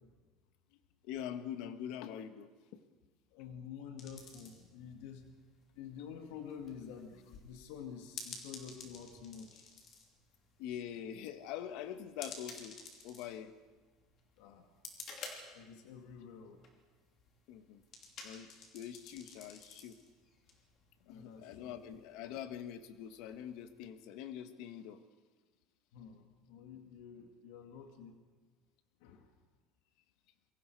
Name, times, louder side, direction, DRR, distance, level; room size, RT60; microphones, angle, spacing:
voice 1, 1.0-2.8 10.6-12.8 13.0-13.5 17.5-17.8 18.2-20.0 21.1-25.0, left 10 dB, 60° left, 10 dB, 1.4 m, -44 dB
voice 2, 3.3-5.3 5.7-9.7 14.4-14.7 15.5-16.6 21.0-21.7 25.9-28.2 29.0-29.3, left 7 dB, 80° left, 4 dB, 2.1 m, -49 dB
sound 1, 4.0-23.9, left 4 dB, 35° left, 3.0 m, -54 dB
28.0 x 22.5 x 4.7 m, 1.3 s
cardioid pair, 175°, 0 cm